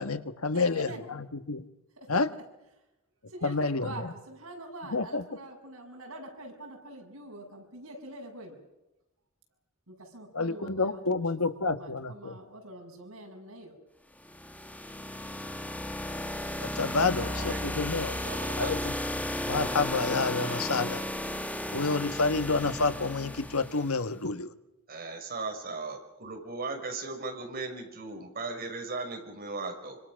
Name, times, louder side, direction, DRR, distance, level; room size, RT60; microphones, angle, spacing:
voice 1, 0.0-1.6 2.1-2.3 3.4-3.9 4.9-5.2 10.3-12.3 16.6-18.1 18.6-18.9 19.5-21.0 21.7-24.5, left 3 dB, 85° left, 10 dB, 1.5 m, -29 dB
voice 2, 0.5-1.0 2.0-2.2 3.3-8.6 9.9-13.8, right 1 dB, 80° right, 2 dB, 7.3 m, -44 dB
sound 1, 14.2-24.0, left 1 dB, 5° left, 1.6 m, -34 dB
voice 3, 17.2-18.7 24.9-30.0, right 3 dB, 45° right, 3 dB, 5.7 m, -38 dB
26.5 x 25.5 x 6.4 m, 0.96 s
head